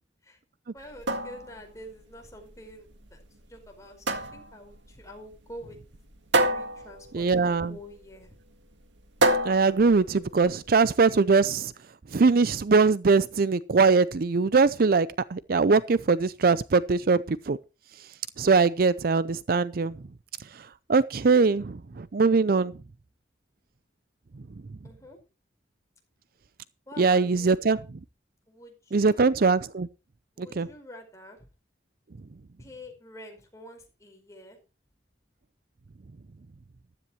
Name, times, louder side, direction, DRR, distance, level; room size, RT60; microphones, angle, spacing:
voice 1, 0.7-3.2 3.5-5.8 6.3-8.3 24.8-25.2 26.9-27.6 28.5-29.3 30.4-31.5 32.6-34.6, left 1 dB, 15° left, 5.0 m, -47 dB
sound 1, 0.8-10.8, right 2 dB, 80° right, 1.8 m, -30 dB
voice 2, 7.1-7.8 9.4-11.7 12.1-17.6 18.4-20.0 20.9-22.7 27.0-27.8 28.9-29.9 30.4-30.7, right 4 dB, 50° right, 0.5 m, -22 dB
14.5 x 13.0 x 3.1 m
head